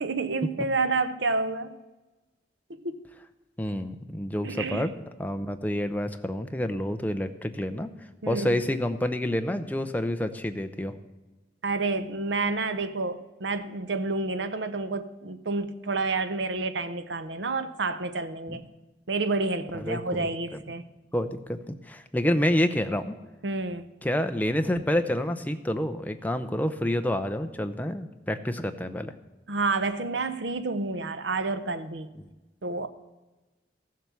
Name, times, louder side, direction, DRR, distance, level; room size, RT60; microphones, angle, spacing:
voice 1, 0.0-1.7 2.8-3.0 4.4-4.9 8.2-8.6 11.6-18.6 19.1-20.8 23.4-23.8 29.5-32.1 32.6-32.9, right 3 dB, 80° right, 0.8 m, -29 dB
voice 2, 3.6-4.9 5.2-7.9 8.3-10.9 18.5-18.6 19.7-20.3 21.1-23.1 24.0-29.1 32.2-32.3, left 1 dB, 10° left, 0.6 m, -28 dB
14.5 x 7.6 x 7.0 m
head